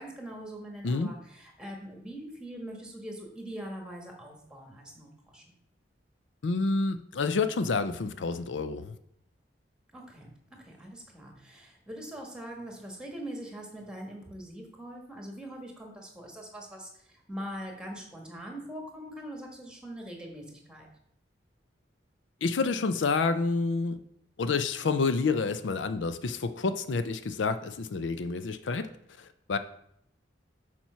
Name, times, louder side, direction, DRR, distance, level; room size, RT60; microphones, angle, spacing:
voice 1, 0.0-5.5 9.9-20.9, right 1 dB, 5° right, 1 dB, 1.5 m, -42 dB
voice 2, 6.4-9.0 22.4-24.0 24.4-28.9 29.2-29.6, left 4 dB, 85° left, 11 dB, 0.5 m, -28 dB
7.3 x 4.4 x 5.6 m, 0.72 s
head